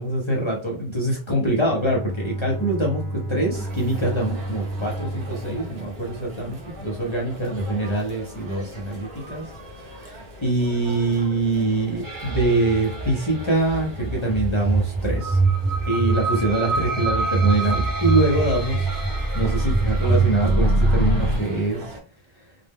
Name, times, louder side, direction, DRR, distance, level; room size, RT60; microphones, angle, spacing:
voice 1, 0.0-3.0 3.3-9.4 10.0-15.4 15.9-18.9 19.3-21.8, right 2 dB, 35° left, -1 dB, 0.5 m, -24 dB
Bowed string instrument, 1.6-6.8, right 1 dB, 90° right, 0.9 m, -32 dB
sound 1, 3.5-22.0, equal, 55° right, 0.8 m, -41 dB
sound 2, 12.0-21.4, right 3 dB, 25° right, 0.6 m, -23 dB
2.0 x 2.0 x 3.4 m, 0.37 s
omnidirectional pair, 1.1 m